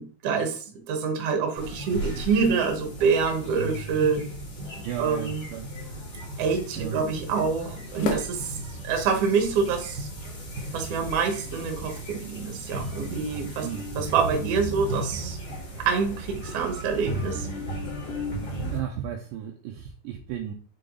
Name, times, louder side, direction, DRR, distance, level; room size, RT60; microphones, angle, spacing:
voice 1, 0.0-4.2 5.0-5.4 6.4-8.6 8.8-10.1 10.7-13.7 13.9-15.4 15.8-17.5, right 5 dB, 60° right, 3 dB, 1.7 m, -26 dB
sound 1, 1.6-18.8, right 1 dB, 35° left, 2.4 m, -35 dB
sound 2, 3.3-9.3, left 6 dB, 70° left, 2.5 m, -40 dB
voice 2, 4.8-5.7 6.8-7.0 13.6-13.8 18.7-20.5, right 10 dB, 80° right, 2 dB, 2.1 m, -34 dB
6.7 x 3.8 x 3.9 m, 0.38 s
omnidirectional pair, 4.6 m